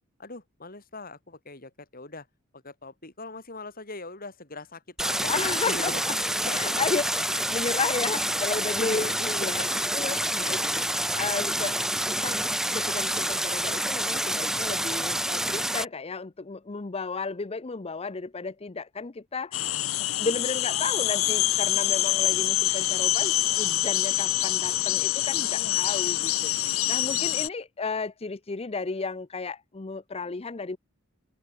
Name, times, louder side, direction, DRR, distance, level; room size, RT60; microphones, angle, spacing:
voice 1, 0.2-2.3 2.5-7.0 8.5-10.9 25.5-25.8, left 3 dB, 45° left, 7.0 m, -41 dB
Stream, 5.0-15.9, right 1 dB, ahead, 1.4 m, -28 dB
voice 2, 5.3-6.1 6.5-10.6 11.2-11.8 12.1-19.7 20.0-30.8, left 4 dB, 30° left, 0.6 m, -33 dB
sound 1, 19.5-27.5, left 15 dB, 75° left, 0.8 m, -25 dB
head